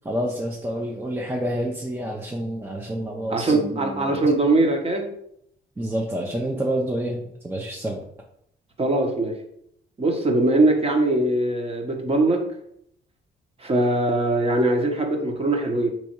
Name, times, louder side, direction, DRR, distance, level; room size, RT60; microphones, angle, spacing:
voice 1, 0.0-4.2 5.8-8.0, right 1 dB, 10° right, -1 dB, 0.6 m, -28 dB
voice 2, 3.3-5.1 8.8-9.3 10.0-12.4 13.6-15.9, right 2 dB, 30° right, 2 dB, 1.0 m, -21 dB
3.4 x 3.1 x 4.5 m, 0.72 s
cardioid pair, 90°, 20 cm